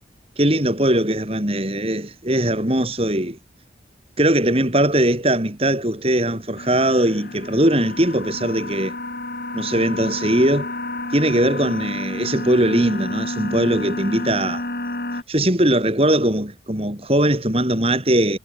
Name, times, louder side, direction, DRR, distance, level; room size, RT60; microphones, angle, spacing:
voice 1, 0.4-3.4 4.2-9.0 9.5-10.7 11.1-14.6 15.3-18.4, right 1 dB, 30° right, 4.1 m, -20 dB
sound 1, 6.6-15.2, left 2 dB, 55° left, 2.8 m, -30 dB
head